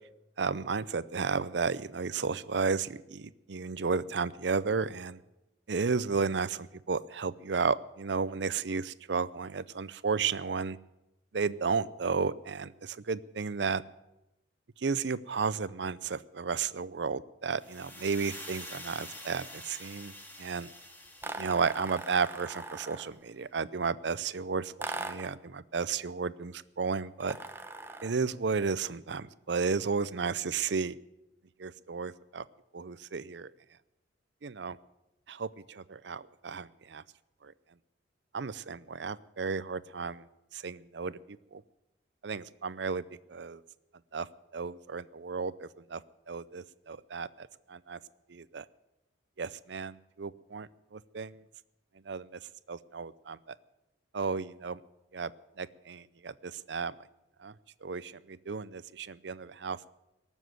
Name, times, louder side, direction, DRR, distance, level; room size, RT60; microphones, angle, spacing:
voice 1, 0.4-5.2 5.7-10.8 11.3-13.8 14.8-20.1 20.4-20.7 21.4-27.4 28.0-31.0 31.6-32.4 32.7-33.5 34.4-34.8 35.3-37.0 37.4-37.5 38.3-40.3 40.5-41.2 41.5-41.6 42.2-43.0 43.3-43.6 44.1-44.3 44.5-46.0 46.3-48.0 48.3-48.6 49.4-51.4 52.1-52.4 52.7-53.5 54.1-54.8 55.1-55.3 55.6-56.9 57.4-57.5 57.8-59.9, right 5 dB, 65° right, 18 dB, 0.6 m, -33 dB
sound 1, 17.6-22.6, left 1 dB, 10° left, 2.2 m, -47 dB
sound 2, 21.2-23.2 24.8-25.4 27.2-28.2, right 2 dB, 10° right, 0.8 m, -40 dB
19.0 x 7.3 x 9.2 m, 0.92 s
head